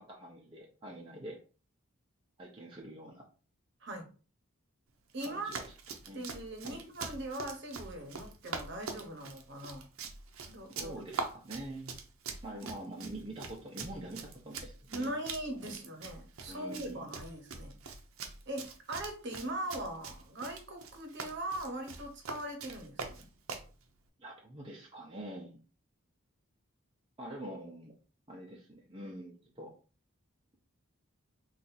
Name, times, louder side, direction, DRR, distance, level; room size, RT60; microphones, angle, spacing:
voice 1, 0.0-1.4 2.4-3.2 5.2-5.7 6.0-6.2 6.6-6.8 10.7-11.9 12.4-15.1 16.5-17.1 24.2-25.6 27.2-27.9 28.3-29.7, right 1 dB, 25° right, 0.5 m, -45 dB
voice 2, 5.1-5.6 6.1-9.9 10.5-10.9 14.9-17.8 18.5-23.3, right 1 dB, 55° right, 0.9 m, -40 dB
Run, 5.1-23.7, right 4 dB, 75° right, 0.6 m, -44 dB
2.7 x 2.4 x 4.0 m
head